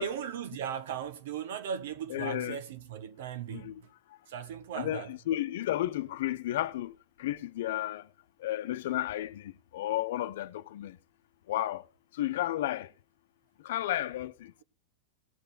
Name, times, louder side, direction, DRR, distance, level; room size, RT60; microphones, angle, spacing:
voice 1, 0.0-3.9 4.3-5.1, right 8 dB, 70° right, 1.2 m, -37 dB
voice 2, 2.1-2.6 3.5-3.8 4.8-8.1 8.4-11.0 11.5-11.8 12.1-12.9 13.6-14.5, left 13 dB, 70° left, 0.8 m, -33 dB
19.0 x 6.9 x 4.1 m
hypercardioid pair, 125°, 0 cm